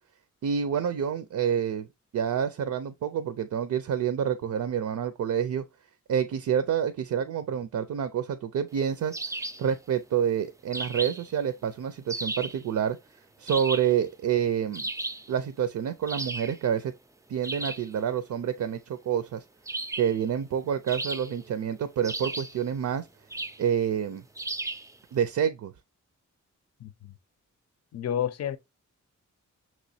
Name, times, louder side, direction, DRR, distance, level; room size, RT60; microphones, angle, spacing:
voice 1, 0.4-1.9 2.1-5.6 6.1-9.1 9.6-13.0 13.4-14.9 15.3-16.9 17.3-19.4 20.0-23.1 23.6-24.2 25.1-25.7, right 8 dB, 70° right, 0.5 m, -28 dB
sound 1, 9.1-9.7 10.7-11.3 12.1-12.6 13.5-14.0 14.7-15.3 16.1-16.6 17.4-17.9 19.7-20.2 20.9-21.5 22.0-22.6 23.3-23.7 24.4-24.9, right 2 dB, 10° right, 0.3 m, -35 dB
voice 2, 26.8-27.1 27.9-28.6, left 9 dB, 55° left, 0.5 m, -30 dB
6.1 x 3.0 x 2.7 m
wide cardioid pair, 100°, 31 cm